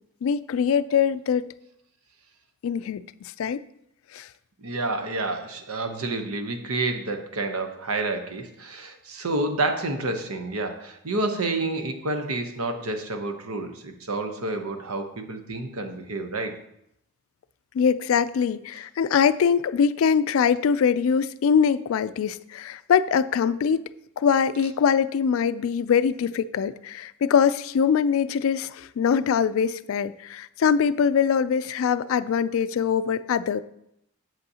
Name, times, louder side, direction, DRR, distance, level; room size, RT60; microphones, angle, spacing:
voice 1, 0.2-1.5 2.6-3.6 4.1-4.3 17.7-23.8 24.2-33.6, left 7 dB, 70° left, 15 dB, 0.3 m, -23 dB
voice 2, 4.6-16.6, right 2 dB, 85° right, 6 dB, 0.9 m, -29 dB
8.0 x 7.6 x 2.8 m, 0.76 s
head